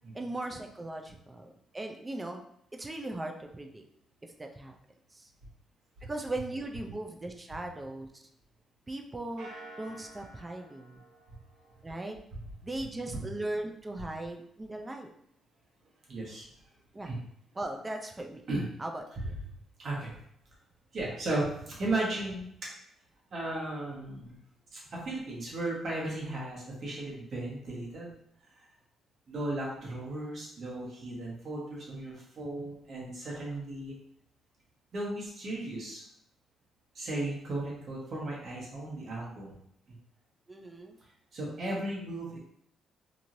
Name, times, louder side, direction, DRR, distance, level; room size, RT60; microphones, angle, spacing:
voice 1, 0.1-2.4 2.8-3.8 4.4-4.8 5.1-5.3 6.0-8.1 8.9-9.5 9.8-11.0 11.8-12.2 12.6-15.1 16.9-17.1 17.6-18.4 18.8-19.3 32.4-32.7 40.5-41.0, right 2 dB, 20° right, 3 dB, 0.4 m, -38 dB
sound 1, 9.4-12.1, right 2 dB, 75° right, 0.5 m, -50 dB
voice 2, 16.1-16.7 17.0-17.2 18.5-18.7 19.2-19.3 19.8-20.1 20.9-22.5 23.3-24.4 24.7-28.1 28.5-28.6 29.3-34.0 34.9-36.0 36.9-39.6 39.9-40.0 41.3-42.4, right 2 dB, 50° right, -4 dB, 1.2 m, -35 dB
3.0 x 2.7 x 2.6 m, 0.73 s
cardioid pair, 90°, 0 cm